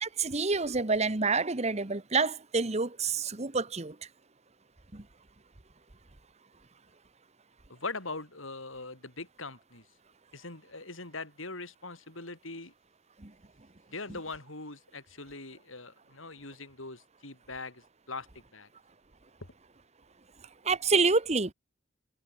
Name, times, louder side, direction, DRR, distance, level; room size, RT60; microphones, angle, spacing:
voice 1, 0.0-4.0 4.9-5.0 13.2-13.3 20.6-21.5, right 4 dB, 35° right, 1.3 m, -28 dB
voice 2, 7.7-9.8 10.3-12.7 13.9-18.7, left 3 dB, 80° left, 6.9 m, -42 dB
head